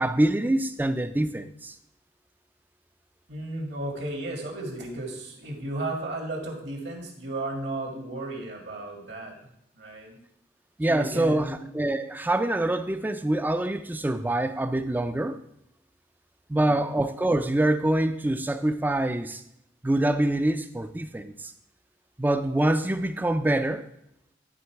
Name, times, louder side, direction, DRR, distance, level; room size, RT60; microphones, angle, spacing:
voice 1, 0.0-1.7 10.8-15.4 16.5-19.4 19.8-21.5 22.2-23.9, right 1 dB, 10° right, 0.4 m, -25 dB
voice 2, 3.3-9.3 9.8-10.2 10.9-11.6 16.5-16.9, right 2 dB, 70° right, 2.0 m, -34 dB
11.5 x 3.8 x 4.6 m
head